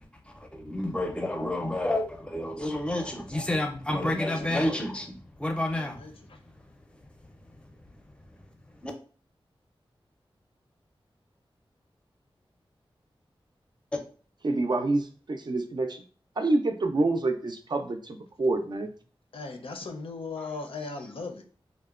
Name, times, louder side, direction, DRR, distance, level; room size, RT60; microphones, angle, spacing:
voice 1, 0.2-6.0 7.5-7.6 8.8-8.9, left 1 dB, 10° left, 3 dB, 0.5 m, -30 dB
voice 2, 5.7-6.4 19.3-21.4, left 4 dB, 70° left, 4 dB, 0.5 m, -38 dB
voice 3, 14.4-16.0 16.4-18.9, right 2 dB, 50° right, 6 dB, 0.3 m, -27 dB
2.8 x 2.1 x 2.3 m, 0.42 s
wide cardioid pair, 65°, 10 cm